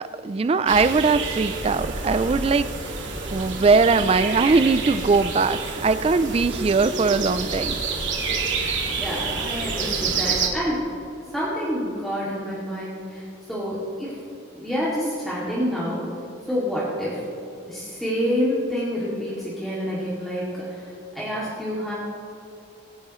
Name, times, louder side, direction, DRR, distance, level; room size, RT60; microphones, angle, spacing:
voice 1, 0.0-2.9 3.3-7.8, right 4 dB, 30° right, 12 dB, 0.3 m, -21 dB
sound 1, 0.7-10.5, right 4 dB, 70° right, 2.1 m, -28 dB
voice 2, 8.6-10.9 11.3-14.2 14.5-16.1 16.5-17.3 17.6-21.9, equal, ahead, -9 dB, 2.3 m, -28 dB
23.5 x 10.0 x 3.1 m, 2.8 s
head